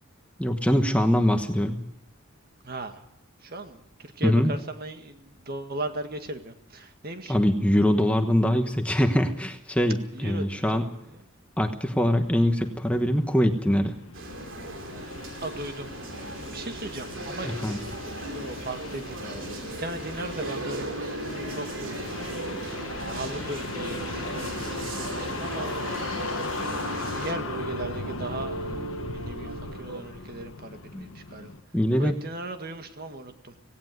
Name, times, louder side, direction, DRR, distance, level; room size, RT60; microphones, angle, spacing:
voice 1, 0.4-1.8 4.2-4.5 7.3-10.8 11.6-13.9 17.4-17.8 30.9-31.1 31.7-32.1, equal, 5° left, 5 dB, 1.2 m, -23 dB
voice 2, 2.6-3.0 3.4-7.3 10.1-10.9 15.0-15.1 15.4-15.9 16.5-17.6 18.3-20.9 21.5-22.7 23.0-25.8 27.1-31.5 32.0-33.5, right 1 dB, 45° right, 6 dB, 1.8 m, -37 dB
sound 1, 12.0-31.6, left 3 dB, 70° left, 1.3 m, -38 dB
sound 2, 14.1-27.3, right 1 dB, 60° right, 3.2 m, -37 dB
sound 3, 20.4-30.0, right 3 dB, 90° right, 1.0 m, -39 dB
17.5 x 17.5 x 9.4 m, 0.78 s
head